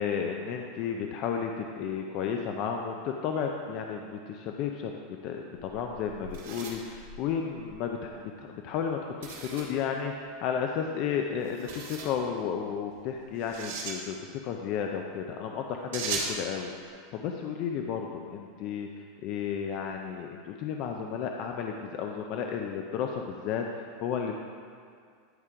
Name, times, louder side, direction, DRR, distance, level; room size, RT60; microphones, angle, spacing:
voice 1, 0.0-5.0 5.2-18.9 19.2-24.3, left 7 dB, 45° left, 3 dB, 0.5 m, -33 dB
sound 1, 5.6-7.8 9.2-9.8 11.4-12.1 13.4-14.0 15.9-16.4, right 5 dB, 85° right, 2.0 m, -37 dB
11.0 x 3.7 x 4.9 m, 2.1 s
supercardioid pair, 145°, 0 cm